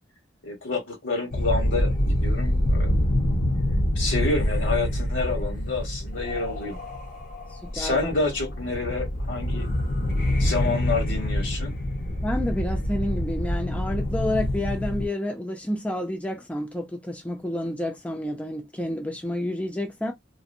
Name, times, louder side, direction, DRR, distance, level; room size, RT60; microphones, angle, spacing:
voice 1, 0.4-2.9 3.9-6.8 7.7-9.7 10.4-11.7, left 3 dB, 70° left, 1.3 m, -28 dB
sound 1, 1.3-15.1, left 1 dB, 50° left, 0.7 m, -26 dB
voice 2, 7.5-8.1 12.2-20.1, left 1 dB, 5° left, 0.5 m, -30 dB
2.6 x 2.0 x 2.6 m
head